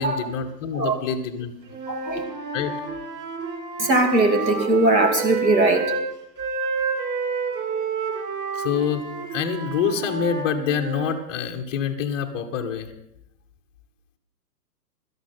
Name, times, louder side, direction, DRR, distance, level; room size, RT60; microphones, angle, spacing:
voice 1, 0.0-1.5 2.5-2.7 8.5-9.0 9.3-12.9, left 7 dB, 15° left, -1 dB, 0.5 m, -26 dB
Wind instrument woodwind instrument, 1.7-6.0 6.4-11.2, right 5 dB, 20° right, 3.8 m, -29 dB
voice 2, 1.9-2.2 3.8-5.8, right 2 dB, 85° right, 4 dB, 2.9 m, -20 dB
17.5 x 12.5 x 4.2 m, 0.81 s
figure-of-eight pair, 120°, 50 cm